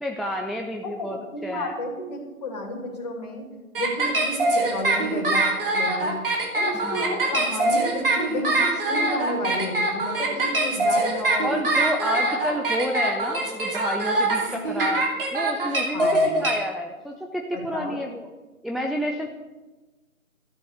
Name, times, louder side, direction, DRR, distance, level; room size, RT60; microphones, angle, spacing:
voice 1, 0.0-1.2 1.4-1.7 6.7-7.2 11.4-18.3 18.6-19.3, equal, ahead, 2 dB, 0.4 m, -30 dB
voice 2, 0.8-3.5 3.8-5.4 5.7-6.2 6.5-11.6 12.2-12.3 14.4-14.6 15.9-16.3 17.5-18.0, left 1 dB, 30° left, 0 dB, 2.8 m, -32 dB
sound 1, 3.7-16.5, right 2 dB, 40° right, 3.0 m, -23 dB
13.0 x 10.0 x 6.7 m, 1.2 s
figure-of-eight pair, 155°, 43 cm